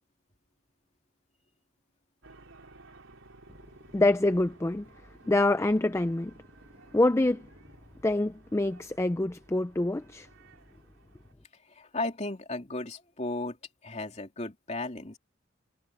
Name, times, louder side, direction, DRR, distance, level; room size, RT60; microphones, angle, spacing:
sound 1, 2.2-11.3, right 2 dB, 75° right, 3.7 m, -56 dB
voice 1, 3.9-4.9 5.3-6.3 6.9-7.5 8.0-10.3, left 2 dB, 15° left, 0.4 m, -25 dB
voice 2, 11.7-13.6 13.8-15.2, left 2 dB, 35° left, 3.1 m, -35 dB
head